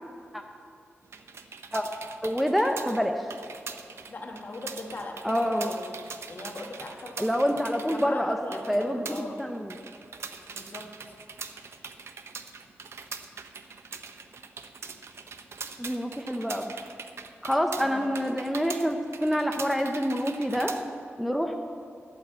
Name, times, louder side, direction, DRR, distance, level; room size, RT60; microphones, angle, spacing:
sound 1, 1.0-20.8, right 5 dB, 75° right, 0.7 m, -42 dB
voice 1, 2.2-3.3 5.2-5.7 7.2-8.4 8.7-9.8 15.8-16.7 17.4-20.7 21.2-21.6, equal, ahead, 3 dB, 0.6 m, -27 dB
voice 2, 4.1-5.9 6.3-9.4 10.5-11.2 17.8-18.2, left 2 dB, 45° left, 1 dB, 1.6 m, -40 dB
11.0 x 8.5 x 8.1 m, 2.5 s
wide cardioid pair, 155°, 5 cm